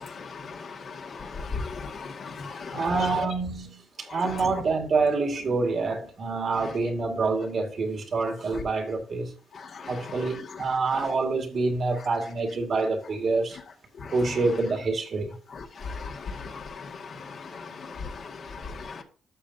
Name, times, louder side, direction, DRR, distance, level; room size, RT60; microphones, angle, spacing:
voice 1, 0.0-2.9 4.1-4.2 9.7-9.9 14.0-14.1 15.8-19.0, left 4 dB, 55° left, 2.0 m, -37 dB
voice 2, 2.7-9.3 9.9-13.6 14.1-15.4, right 3 dB, 50° right, 2.1 m, -27 dB
12.0 x 6.5 x 2.8 m
cardioid pair, 90°, 0 cm